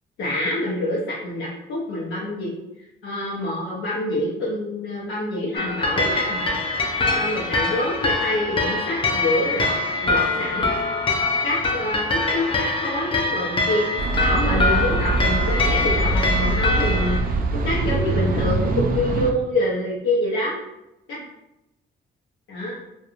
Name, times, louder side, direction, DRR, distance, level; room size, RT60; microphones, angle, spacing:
voice 1, 0.2-2.6 3.0-6.4 7.1-9.8 10.0-10.7 11.4-17.2 17.5-20.6 21.1-21.2 22.5-22.7, left 1 dB, 85° left, -5 dB, 0.6 m, -26 dB
sound 1, 5.6-17.2, left 2 dB, 25° left, 0.4 m, -24 dB
sound 2, 14.0-19.3, right 3 dB, 45° right, 0.4 m, -23 dB
2.4 x 2.2 x 2.9 m, 0.92 s
cardioid pair, 90°, 20 cm